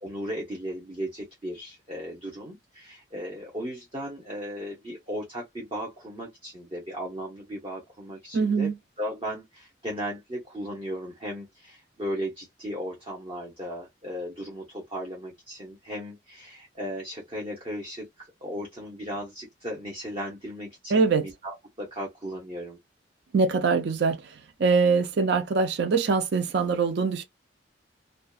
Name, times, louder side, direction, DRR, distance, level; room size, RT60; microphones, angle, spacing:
voice 1, 0.0-8.7 9.0-22.8, equal, 30° right, 0.7 m, -36 dB
voice 2, 8.3-8.7 20.9-21.2 23.3-24.2 24.6-27.2, right 4 dB, 65° right, 0.4 m, -23 dB
2.5 x 2.2 x 2.3 m
head